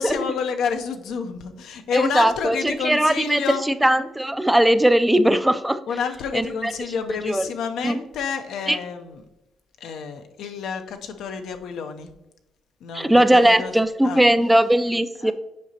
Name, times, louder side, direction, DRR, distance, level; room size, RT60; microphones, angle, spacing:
voice 1, 0.0-3.6 5.9-9.2 9.8-12.1 12.8-13.7 14.0-14.3 15.2-15.3, left 6 dB, 80° left, 6 dB, 0.6 m, -29 dB
voice 2, 1.9-3.4 3.7-5.8 6.3-6.7 7.3-7.4 7.8-8.0 8.7-8.8 12.9-15.3, right 1 dB, 5° right, 11 dB, 0.4 m, -19 dB
7.5 x 5.0 x 2.8 m, 0.94 s
cardioid pair, 90°, 0 cm